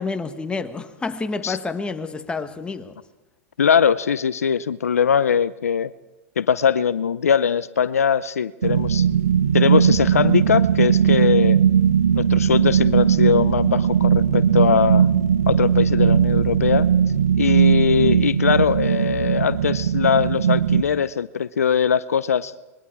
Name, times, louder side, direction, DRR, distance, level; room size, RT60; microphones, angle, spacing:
voice 1, 0.0-3.0, left 4 dB, 10° left, 1.5 m, -29 dB
voice 2, 3.6-5.9 6.4-9.1 9.5-11.6 12.1-15.1 15.5-16.9 17.4-22.5, left 7 dB, 85° left, 0.6 m, -21 dB
sound 1, 8.6-20.8, right 8 dB, 80° right, 1.1 m, -18 dB
26.0 x 21.5 x 4.8 m
hypercardioid pair, 105°, 8 cm